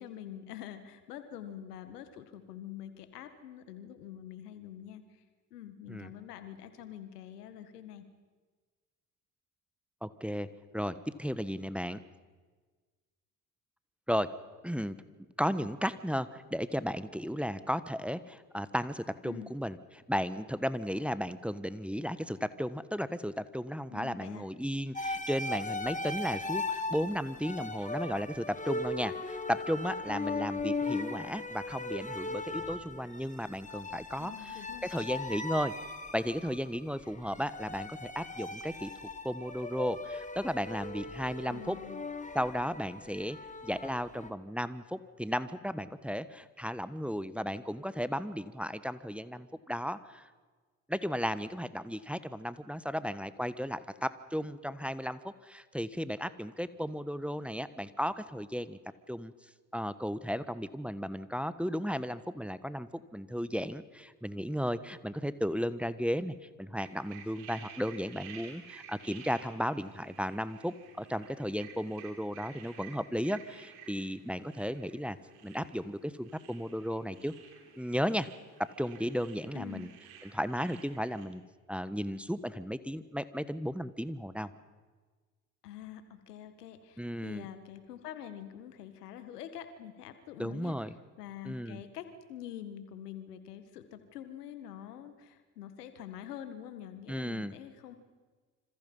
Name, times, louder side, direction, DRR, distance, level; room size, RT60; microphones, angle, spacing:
voice 1, 0.0-5.2 5.5-8.1 19.2-19.5 23.9-24.5 34.2-34.9 41.5-42.1 79.5-79.9 85.6-90.8 91.2-98.0, left 10 dB, 85° left, 10 dB, 1.8 m, -46 dB
voice 2, 10.0-10.5 10.7-12.0 14.1-14.3 14.6-15.0 15.4-35.7 36.1-38.9 39.2-41.8 42.3-43.4 43.6-50.2 50.9-58.8 59.1-59.3 59.7-75.2 75.4-77.3 77.8-78.3 78.6-79.9 80.2-81.4 81.7-84.5 87.0-87.5 90.4-90.9 91.4-91.8 97.1-97.5, equal, 5° right, 14 dB, 1.3 m, -34 dB
sound 1, 24.9-44.3, left 2 dB, 15° left, 2.3 m, -38 dB
sound 2, 66.8-81.3, right 7 dB, 80° right, 3.7 m, -53 dB
26.5 x 26.5 x 5.6 m, 1.4 s
hypercardioid pair, 50°, 45 cm